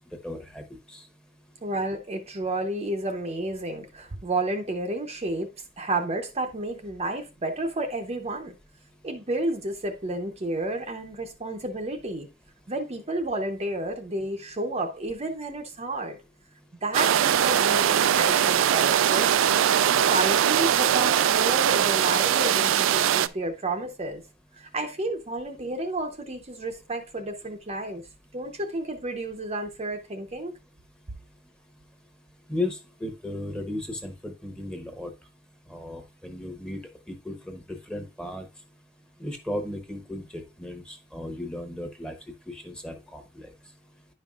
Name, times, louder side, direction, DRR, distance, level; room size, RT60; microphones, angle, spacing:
voice 1, 0.2-0.6 0.9-1.0 32.5-35.1 35.7-36.8 37.1-38.4 39.2-42.1 42.5-43.5, left 1 dB, 5° left, 1.0 m, -35 dB
voice 2, 1.6-8.6 9.0-12.3 12.7-16.2 16.8-19.3 19.8-24.2 24.6-28.1 28.3-30.5, right 2 dB, 30° right, 0.7 m, -31 dB
sound 1, 16.9-23.3, right 9 dB, 70° right, 0.3 m, -21 dB
10.0 x 5.4 x 2.4 m
head